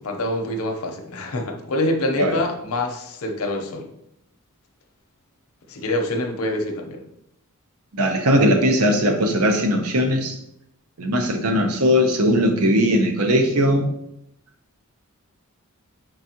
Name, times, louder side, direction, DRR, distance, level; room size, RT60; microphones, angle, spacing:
voice 1, 0.0-3.9 5.7-7.0, left 1 dB, 70° left, 3 dB, 0.7 m, -26 dB
voice 2, 8.0-10.3 11.0-13.9, equal, 85° right, 5 dB, 0.7 m, -19 dB
4.6 x 3.9 x 2.8 m, 0.78 s
head